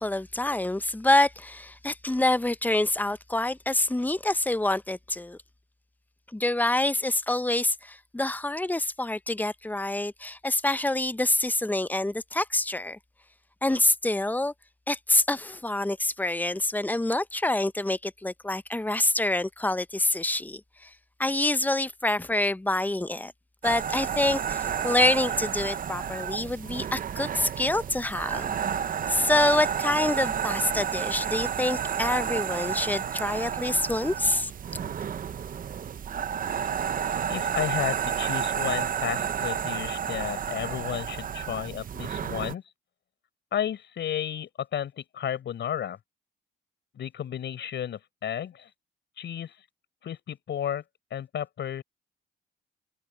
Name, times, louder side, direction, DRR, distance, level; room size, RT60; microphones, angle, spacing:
voice 1, 0.0-5.4 6.3-13.0 13.6-14.5 14.9-20.9 21.2-23.3 23.6-28.5 29.1-34.5, left 1 dB, 10° left, 0.7 m, -26 dB
sound 1, 23.6-42.5, right 8 dB, 45° right, 0.7 m, -31 dB
voice 2, 37.3-42.6 43.5-46.0 46.9-48.7 49.2-49.5 50.0-50.8 51.1-51.8, left 9 dB, 65° left, 5.5 m, -32 dB
cardioid pair, 90°, 20 cm